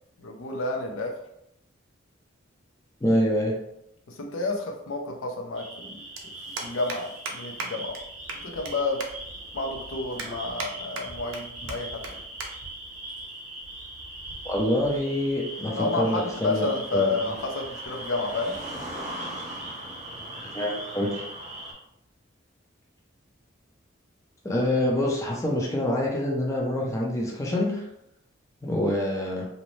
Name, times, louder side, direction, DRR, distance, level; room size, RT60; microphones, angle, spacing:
voice 1, 0.2-1.2 4.1-7.9 8.3-9.0 9.5-12.0 15.7-18.5, left 3 dB, 85° left, 2 dB, 0.5 m, -30 dB
voice 2, 3.0-3.5 14.4-16.7 16.9-17.1 20.4-21.2 24.4-27.8 28.6-29.5, left 1 dB, 15° left, -2 dB, 0.4 m, -26 dB
sound 1, 3.9-4.0 5.4-5.5 5.7-5.9 6.2-6.3 6.6-7.0 7.3-7.4 7.6-7.7 7.9-8.0 8.3-8.7 9.0-9.1 9.6-9.7 10.2-10.7 11.0-11.4 11.7-11.8 12.0-12.1 12.4-12.5 12.8-13.0 13.8-14.1, right 3 dB, 80° right, 0.5 m, -35 dB
sound 2, 5.6-21.7, right 1 dB, 35° right, 0.7 m, -39 dB
2.6 x 2.0 x 3.0 m, 0.79 s
head